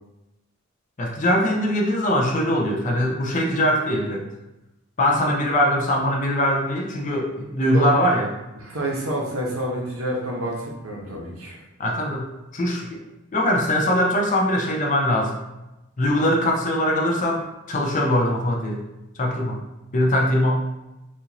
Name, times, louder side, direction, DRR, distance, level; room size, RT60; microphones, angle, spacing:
voice 1, 1.0-4.2 5.0-8.3 11.8-13.0 13.3-15.3 16.0-18.8 19.2-19.6 19.9-20.6, left 1 dB, 35° left, 0 dB, 0.5 m, -22 dB
voice 2, 8.6-11.6, right 1 dB, 75° right, -2 dB, 0.9 m, -28 dB
4.2 x 2.5 x 2.8 m, 0.96 s
head